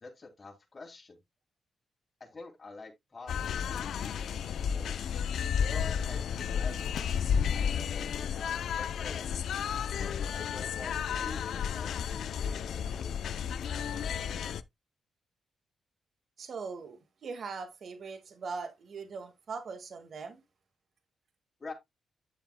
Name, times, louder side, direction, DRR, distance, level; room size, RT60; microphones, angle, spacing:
voice 1, 0.0-1.2 2.2-5.1 5.7-6.9 7.5-9.5 10.0-12.4 12.7-13.2 21.6-21.7, left 3 dB, 40° left, 3.1 m, -47 dB
sound 1, 3.3-14.6, left 7 dB, 75° left, 0.5 m, -32 dB
voice 2, 16.4-20.4, right 4 dB, 60° right, 1.9 m, -41 dB
9.9 x 7.2 x 2.2 m
supercardioid pair, 55°, 0 cm